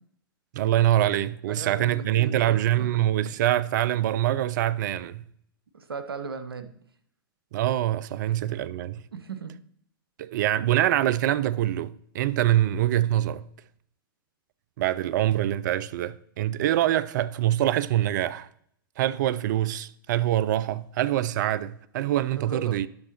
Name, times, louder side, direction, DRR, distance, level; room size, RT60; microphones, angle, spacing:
voice 1, 0.5-5.3 7.5-9.0 10.2-13.5 14.8-18.5 19.0-22.9, right 13 dB, 55° right, 0.4 m, -24 dB
voice 2, 1.5-2.9 5.7-6.7 9.1-9.6 22.3-22.8, right 5 dB, 80° right, 0.7 m, -37 dB
10.5 x 6.4 x 2.8 m
figure-of-eight pair, 105°, 12 cm